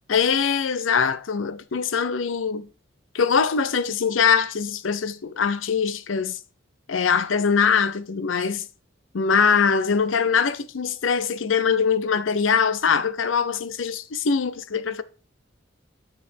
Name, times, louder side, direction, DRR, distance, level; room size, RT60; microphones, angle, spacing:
voice 1, 0.1-2.7 3.1-6.4 6.9-8.6 9.1-15.0, left 6 dB, 90° left, 0.6 m, -22 dB
8.9 x 6.3 x 4.4 m
head